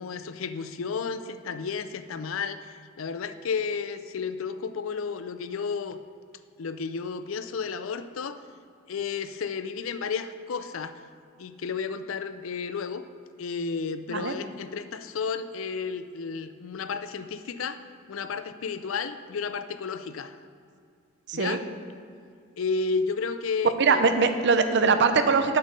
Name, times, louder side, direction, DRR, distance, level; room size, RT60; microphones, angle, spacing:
voice 1, 0.0-6.0 6.6-8.4 8.9-11.0 11.4-13.0 13.4-17.8 18.1-20.4 21.3-21.6 22.6-24.0, left 5 dB, 70° left, 11 dB, 0.4 m, -32 dB
voice 2, 21.3-21.6 23.8-25.6, right 4 dB, 55° right, 8 dB, 0.6 m, -22 dB
7.6 x 7.2 x 5.3 m, 2.3 s
head